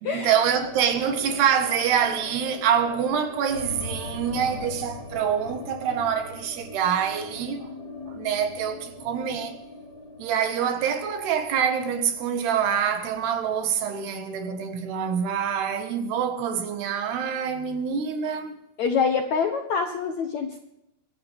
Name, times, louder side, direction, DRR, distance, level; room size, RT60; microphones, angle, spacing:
voice 1, 0.0-7.7 8.1-9.6 10.2-18.5, right 8 dB, 80° right, 3.7 m, -26 dB
sound 1, 0.5-16.6 16.9-17.0 17.3-18.0, left 2 dB, 35° left, 4.3 m, -42 dB
voice 2, 18.8-20.6, left 5 dB, 70° left, 1.7 m, -25 dB
24.0 x 12.0 x 3.6 m
omnidirectional pair, 4.6 m